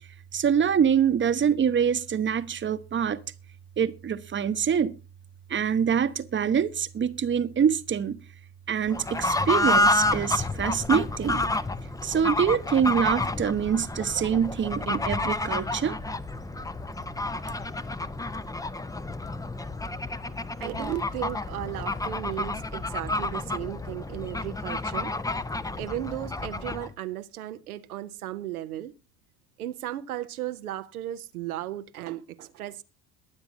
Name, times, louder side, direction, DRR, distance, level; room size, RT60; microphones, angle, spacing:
voice 1, 0.3-3.2 3.8-4.9 5.5-8.2 8.7-11.4 12.0-16.0, right 7 dB, 25° right, 1.0 m, -25 dB
Fowl / Bird, 8.9-26.9, left 2 dB, 10° left, 0.7 m, -29 dB
voice 2, 20.6-25.1 25.8-28.9 29.6-32.8, right 13 dB, 75° right, 0.8 m, -35 dB
22.5 x 8.9 x 2.7 m
figure-of-eight pair, 55°, 44 cm